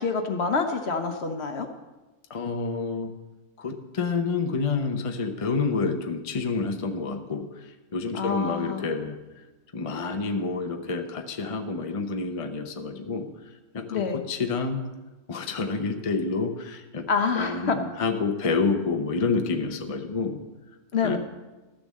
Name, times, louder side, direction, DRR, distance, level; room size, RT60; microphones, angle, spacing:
voice 1, 0.0-1.7 8.1-8.9 13.9-14.2 17.1-17.8 20.9-21.2, left 5 dB, 50° left, 6 dB, 1.1 m, -27 dB
voice 2, 2.3-3.1 3.6-9.2 9.7-13.3 13.7-14.8 15.3-17.1 17.3-20.4 21.0-21.2, left 4 dB, 30° left, 5 dB, 0.7 m, -28 dB
12.5 x 6.8 x 7.5 m, 1.2 s
omnidirectional pair, 1.6 m